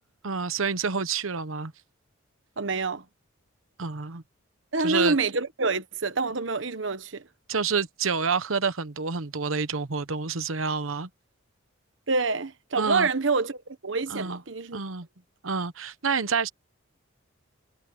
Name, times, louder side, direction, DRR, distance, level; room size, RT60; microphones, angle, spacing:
voice 1, 0.2-1.7 3.8-4.2 4.8-5.2 7.5-11.1 12.8-13.1 14.1-14.4 14.7-15.1 15.4-16.5, right 5 dB, 85° right, 1.0 m, -28 dB
voice 2, 2.6-3.0 4.7-7.2 12.1-14.8, right 3 dB, 65° right, 1.3 m, -27 dB
head